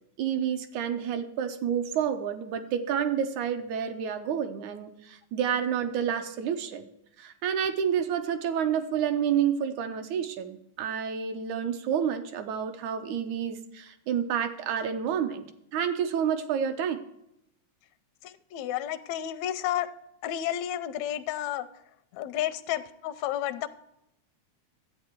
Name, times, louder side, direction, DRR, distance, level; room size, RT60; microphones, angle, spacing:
voice 1, 0.2-6.9 7.2-15.5 15.7-17.0, right 8 dB, 75° right, 8 dB, 2.2 m, -29 dB
voice 2, 18.2-19.9 20.2-21.7 22.1-23.7, left 12 dB, 80° left, 10 dB, 1.6 m, -31 dB
11.5 x 8.5 x 4.5 m, 0.79 s
omnidirectional pair, 3.6 m